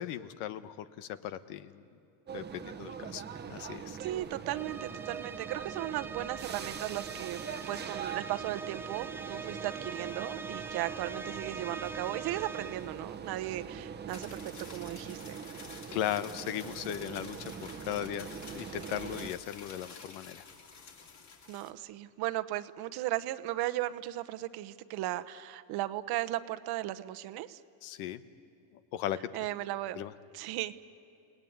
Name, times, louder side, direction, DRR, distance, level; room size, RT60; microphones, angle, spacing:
voice 1, 0.0-1.8 2.3-4.0 15.9-17.5 17.9-18.3 18.5-20.4 27.8-28.2 28.9-29.2 30.0-30.1, left 11 dB, 75° left, 12 dB, 1.3 m, -37 dB
sound 1, 2.3-19.3, right 7 dB, 20° right, 1.0 m, -43 dB
voice 2, 4.0-7.4 7.7-15.4 21.5-27.6 29.3-30.0 30.3-30.7, right 15 dB, 55° right, 11 dB, 1.0 m, -36 dB
sound 2, 4.5-13.0, right 4 dB, 5° right, 0.7 m, -43 dB
sound 3, 14.1-21.7, left 5 dB, 35° left, 2.7 m, -50 dB
29.5 x 18.5 x 9.5 m, 2.7 s
cardioid pair, 130°, 46 cm